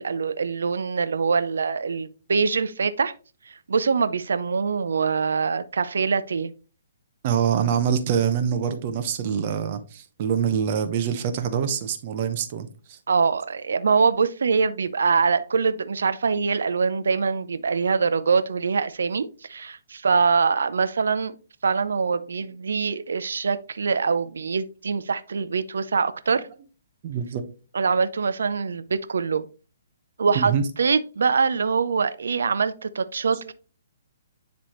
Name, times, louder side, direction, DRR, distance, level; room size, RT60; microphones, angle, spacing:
voice 1, 0.0-3.1 3.5-6.5 13.1-21.4 21.6-26.5 27.7-29.5 30.2-30.5 30.8-33.5, right 5 dB, 85° right, 0.5 m, -24 dB
voice 2, 7.2-13.0 27.0-27.4 30.3-30.6 33.4-33.5, right 7 dB, 40° right, 0.8 m, -25 dB
10.0 x 3.4 x 3.0 m
hypercardioid pair, 160°, 0 cm